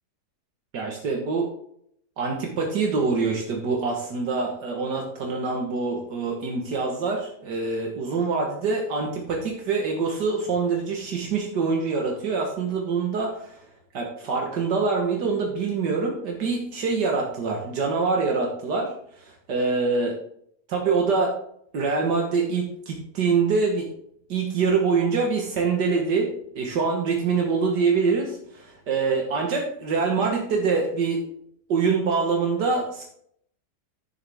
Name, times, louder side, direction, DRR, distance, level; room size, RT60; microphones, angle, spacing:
voice 1, 0.7-1.5 2.2-13.6 13.9-20.1 20.7-21.4 21.7-23.9 24.3-26.3 26.6-31.2 31.7-33.0, right 4 dB, 85° right, 0 dB, 2.0 m, -25 dB
11.0 x 7.1 x 3.5 m, 0.68 s
omnidirectional pair, 1.8 m